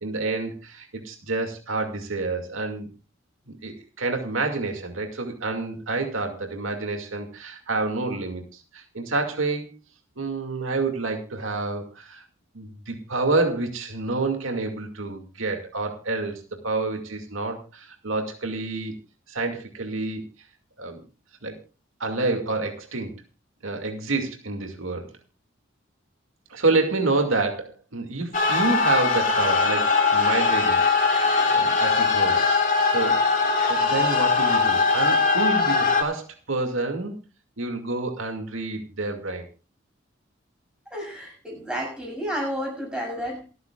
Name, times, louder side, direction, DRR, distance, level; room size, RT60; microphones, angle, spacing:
voice 1, 0.0-2.9 3.5-9.7 10.2-12.2 12.5-18.9 19.3-20.2 20.8-21.0 21.4-21.6 22.0-23.1 23.6-25.1 26.5-33.2 33.7-37.1 37.6-39.5, right 3 dB, 85° right, 3 dB, 2.3 m, -28 dB
sound 1, 28.3-36.0, left 4 dB, 40° left, 3.0 m, -21 dB
voice 2, 40.9-43.4, equal, 5° right, 0 dB, 6.8 m, -31 dB
28.0 x 9.5 x 2.4 m, 0.32 s
head